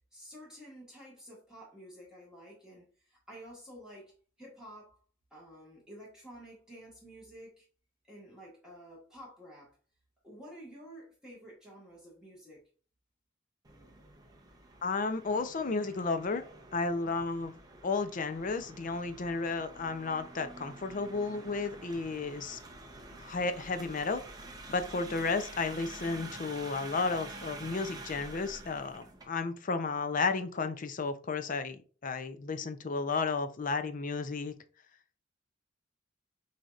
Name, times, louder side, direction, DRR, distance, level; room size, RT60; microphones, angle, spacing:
voice 1, 0.1-5.0 5.3-7.7 8.1-9.8 10.2-12.6, equal, 5° right, 1.5 m, -51 dB
sound 1, 13.6-29.3, right 2 dB, 20° right, 0.7 m, -48 dB
voice 2, 14.8-16.4 16.7-22.6 23.2-24.2 24.7-34.5, left 4 dB, 45° left, 0.5 m, -33 dB
6.2 x 2.8 x 2.4 m
head